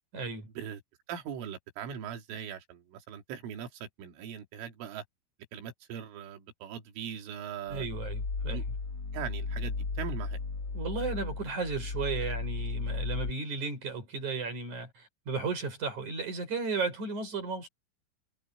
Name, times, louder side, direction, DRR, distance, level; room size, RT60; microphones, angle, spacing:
voice 1, 0.1-0.5 7.7-8.6 10.7-17.7, right 4 dB, 35° right, 7.0 m, -34 dB
voice 2, 1.1-5.0 5.5-7.9 8.5-8.6 9.1-10.4, right 8 dB, 75° right, 5.1 m, -40 dB
sound 1, 7.7-13.3, left 4 dB, 70° left, 1.0 m, -35 dB
omnidirectional pair, 5.9 m